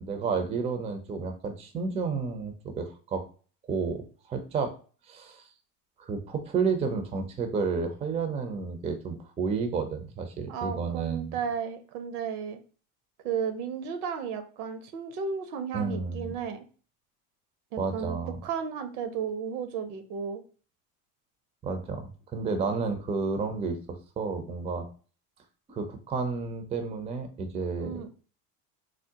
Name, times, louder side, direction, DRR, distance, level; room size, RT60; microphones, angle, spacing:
voice 1, 0.0-3.3 3.7-4.0 4.3-4.7 5.1-5.4 6.0-11.4 15.7-16.3 17.8-18.4 21.6-24.9 25.7-28.2, right 4 dB, 15° right, 7 dB, 0.4 m, -31 dB
voice 2, 10.5-12.6 13.2-16.6 17.7-20.4 27.8-28.1, right 7 dB, 75° right, 9 dB, 0.7 m, -34 dB
3.6 x 2.0 x 2.7 m, 0.38 s
hypercardioid pair, 85°, 45 cm